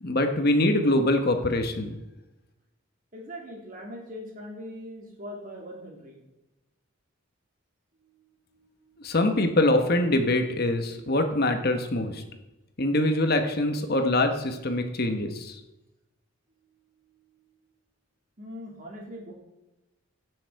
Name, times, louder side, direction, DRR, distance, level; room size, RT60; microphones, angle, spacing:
voice 1, 0.0-2.0 9.0-12.2 12.8-15.6, left 1 dB, 45° left, 6 dB, 1.1 m, -24 dB
voice 2, 3.1-6.2 8.0-8.3 8.5-9.2 17.0-17.5 18.4-19.3, equal, 40° right, -1 dB, 2.9 m, -42 dB
16.5 x 6.7 x 4.7 m, 1.0 s
head